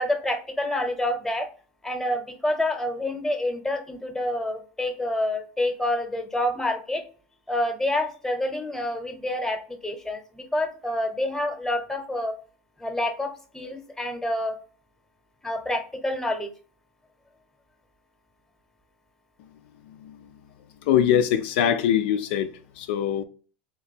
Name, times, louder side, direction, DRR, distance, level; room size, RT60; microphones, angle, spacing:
voice 1, 0.0-1.5 1.8-7.0 7.5-12.3 12.8-14.5 15.4-16.5, left 1 dB, 5° left, 0.8 m, -28 dB
voice 2, 19.9-20.2 20.9-22.5 22.8-23.2, left 9 dB, 75° left, 0.4 m, -23 dB
3.6 x 2.9 x 4.2 m
supercardioid pair, 110°, 6 cm